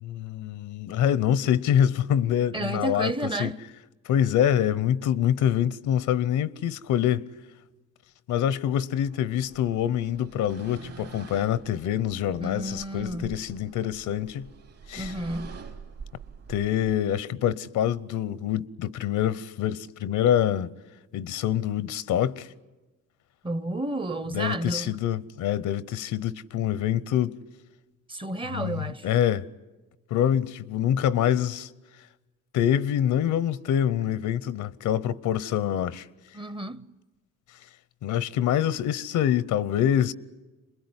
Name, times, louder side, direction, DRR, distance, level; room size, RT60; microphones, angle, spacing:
voice 1, 0.0-3.6 4.0-7.3 8.3-14.5 14.9-15.1 16.5-20.7 21.1-22.5 24.3-27.4 28.5-29.4 30.1-31.7 32.5-36.1 38.0-40.1, left 10 dB, 80° left, 0.9 m, -25 dB
voice 2, 2.5-3.6 12.4-13.3 15.0-15.6 23.4-25.0 28.1-29.1 36.3-36.8, right 2 dB, 15° right, 0.8 m, -31 dB
sound 1, 9.0-17.0, right 6 dB, 55° right, 3.0 m, -45 dB
27.5 x 21.5 x 9.7 m
cardioid pair, 90°, 30 cm